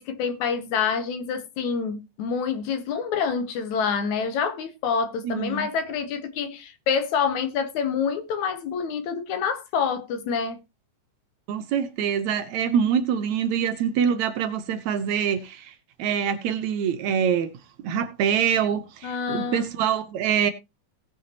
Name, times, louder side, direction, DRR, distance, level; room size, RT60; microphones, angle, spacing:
voice 1, 0.0-10.6 19.0-19.7, left 6 dB, 70° left, 2.3 m, -27 dB
voice 2, 5.2-5.7 11.5-15.7 16.0-17.5 17.8-20.5, right 8 dB, 70° right, 2.1 m, -25 dB
18.0 x 7.0 x 2.9 m
omnidirectional pair, 3.7 m